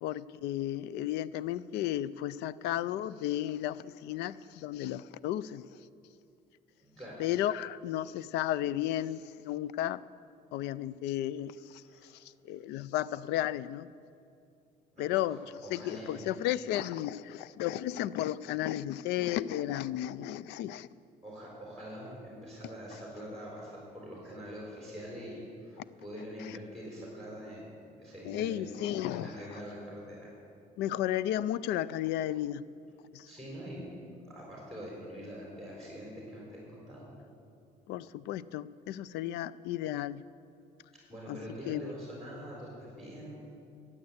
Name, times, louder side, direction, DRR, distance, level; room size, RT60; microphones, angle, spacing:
voice 1, 0.0-5.6 7.2-10.0 10.5-11.8 12.1-13.9 15.0-15.4 15.7-20.9 26.4-26.6 28.2-29.4 30.8-32.6 33.1-33.3 37.9-40.2 41.3-41.4 41.7-41.8, left 13 dB, 85° left, 19 dB, 0.4 m, -33 dB
voice 2, 6.8-7.2 11.8-12.1 14.9-16.2 21.2-27.7 28.0-28.8 29.1-30.3 33.2-34.0 34.2-37.2 41.1-43.4, equal, 5° left, -4 dB, 4.2 m, -44 dB
13.5 x 8.8 x 8.0 m, 2.5 s
cardioid pair, 110°, 17 cm